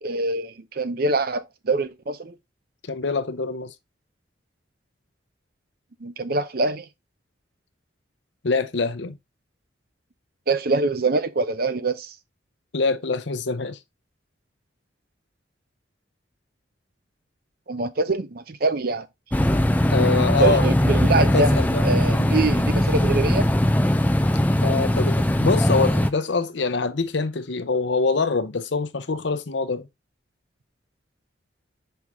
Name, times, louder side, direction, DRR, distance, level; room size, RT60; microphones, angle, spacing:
voice 1, 0.0-2.3 6.0-6.9 10.5-12.1 17.7-19.1 20.4-21.5 21.8-23.5, right 3 dB, 50° right, 0.7 m, -24 dB
voice 2, 2.9-3.7 8.4-9.1 12.7-13.8 19.9-20.7 21.1-21.8 24.6-29.9, left 4 dB, 70° left, 0.7 m, -24 dB
sound 1, 19.3-26.1, left 1 dB, 10° left, 0.4 m, -20 dB
5.7 x 4.7 x 3.5 m
head